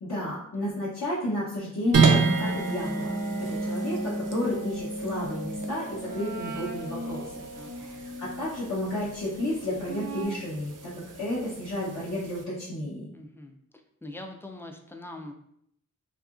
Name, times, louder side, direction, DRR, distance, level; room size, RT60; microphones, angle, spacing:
voice 1, 0.0-7.4 7.8-13.1, left 1 dB, 60° left, -9 dB, 0.8 m, -32 dB
sound 1, 1.8-8.5 9.8-10.2, equal, 35° right, 0.6 m, -36 dB
sound 2, 1.9-12.4, right 5 dB, 75° right, 0.5 m, -31 dB
voice 2, 7.6-8.0 13.1-13.6 14.0-15.3, left 1 dB, 10° left, 3 dB, 0.3 m, -42 dB
2.7 x 2.4 x 2.4 m, 0.72 s
wide cardioid pair, 60°, 32 cm